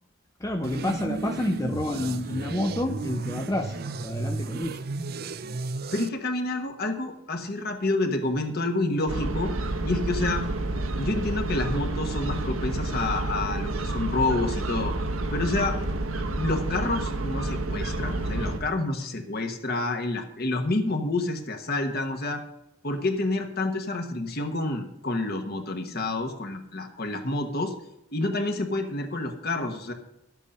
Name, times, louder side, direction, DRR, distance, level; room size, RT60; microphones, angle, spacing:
voice 1, 0.4-4.8, left 1 dB, 15° left, 4 dB, 0.5 m, -29 dB
sound 1, 0.6-6.1, right 3 dB, 50° right, 0.5 m, -33 dB
voice 2, 5.9-10.5 11.0-14.9 15.3-15.8 16.4-22.4 22.8-27.7 28.1-29.9, left 2 dB, 50° left, 5 dB, 1.2 m, -28 dB
sound 2, 9.1-18.6, right 2 dB, 85° right, 1.2 m, -29 dB
11.5 x 8.2 x 5.5 m, 0.82 s
head